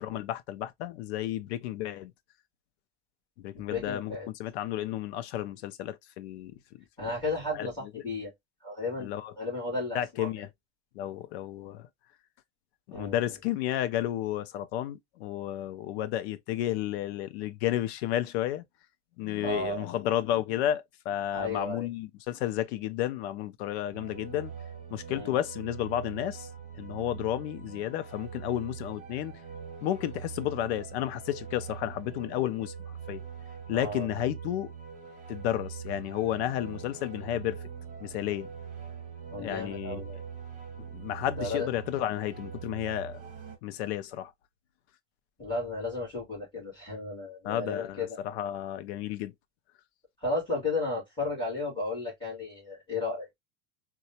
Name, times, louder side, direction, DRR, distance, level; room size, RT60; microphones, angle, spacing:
voice 1, 0.0-2.1 3.4-6.5 7.5-7.7 9.0-9.3 9.9-10.5 11.0-11.9 12.9-18.6 19.2-24.5 24.9-26.5 26.7-29.3 29.8-32.7 33.1-33.2 33.7-34.7 35.3-37.6 38.0-38.5 39.4-40.0 40.8-43.2 43.6-44.3 47.4-49.3, left 12 dB, 65° left, 0.6 m, -32 dB
voice 2, 3.5-4.3 7.0-8.3 8.6-10.3 12.9-13.2 19.4-20.0 21.3-21.9 25.1-25.4 33.7-34.1 39.3-40.2 41.3-41.7 45.4-48.2 50.2-53.3, left 2 dB, 15° left, 2.1 m, -34 dB
sound 1, 23.9-43.6, right 7 dB, 20° right, 1.1 m, -43 dB
4.0 x 2.3 x 2.7 m
supercardioid pair, 175°, 35 cm